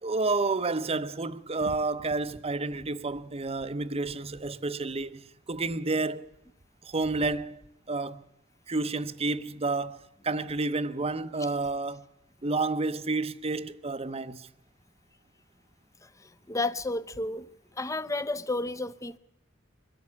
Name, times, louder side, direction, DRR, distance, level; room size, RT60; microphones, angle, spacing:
voice 1, 0.0-6.3 6.8-7.6 7.9-8.2 8.7-12.0 12.4-14.5, right 3 dB, 30° right, 0.8 m, -30 dB
voice 2, 16.0-17.5 17.8-19.2, left 2 dB, 15° left, 0.6 m, -32 dB
23.5 x 12.5 x 8.6 m
head